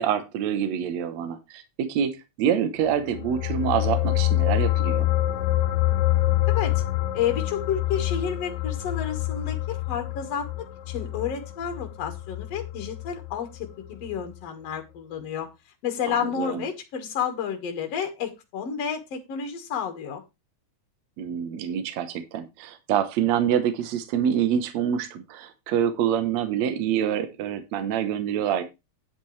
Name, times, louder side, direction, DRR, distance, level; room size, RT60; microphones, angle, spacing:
voice 1, 0.0-5.1 16.1-16.6 21.2-28.6, right 9 dB, 70° right, 9 dB, 2.3 m, -26 dB
sound 1, 3.0-13.7 14.0-14.2, left 15 dB, 80° left, 2.0 m, -26 dB
voice 2, 6.5-6.8 7.1-15.5 15.8-20.2, left 8 dB, 60° left, 5 dB, 2.6 m, -30 dB
10.5 x 9.0 x 3.2 m, 0.25 s
omnidirectional pair, 3.3 m